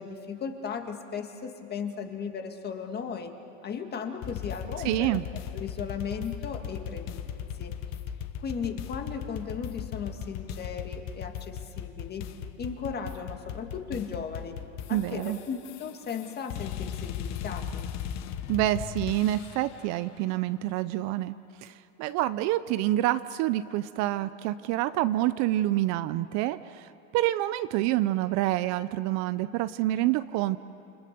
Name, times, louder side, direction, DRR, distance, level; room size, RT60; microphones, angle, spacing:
voice 1, 0.0-3.3 3.6-5.2 5.5-7.8 8.4-12.3 12.6-14.6 14.9-17.9, left 6 dB, 25° left, 5 dB, 2.0 m, -36 dB
sound 1, 4.2-19.8, left 9 dB, 45° left, 1.3 m, -37 dB
voice 2, 4.8-5.2 14.9-15.4 18.5-21.3 21.6-30.6, right 15 dB, 50° right, 14 dB, 0.6 m, -27 dB
29.0 x 25.5 x 6.7 m, 2.8 s
supercardioid pair, 135°, 37 cm